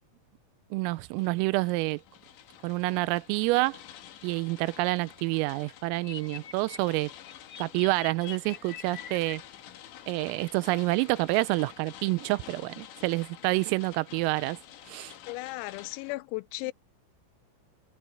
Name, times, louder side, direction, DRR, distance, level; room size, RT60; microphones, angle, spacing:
voice 1, 0.7-2.0 2.6-3.8 4.2-7.1 7.6-9.4 10.1-14.6 14.9-15.1, right 22 dB, 85° right, 3.3 m, -28 dB
sound 1, 0.9-16.1, left 11 dB, 65° left, 3.6 m, -50 dB
sound 2, 5.9-9.4, left 9 dB, 50° left, 2.8 m, -44 dB
voice 2, 15.3-16.7, left 22 dB, 90° left, 3.3 m, -35 dB
omnidirectional pair, 5.9 m